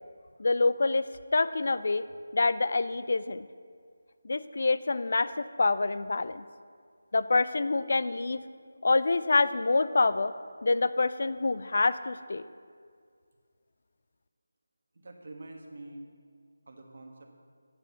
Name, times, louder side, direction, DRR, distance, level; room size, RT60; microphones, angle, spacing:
voice 1, 0.4-2.0 2.3-3.5 4.2-6.5 7.1-8.4 8.8-10.3 10.6-12.4, left 3 dB, 50° left, 14 dB, 0.4 m, -26 dB
voice 2, 14.9-16.1 16.6-17.3, right 2 dB, 50° right, 1 dB, 1.4 m, -46 dB
8.8 x 7.6 x 6.4 m, 2.1 s
figure-of-eight pair, 175°, 0 cm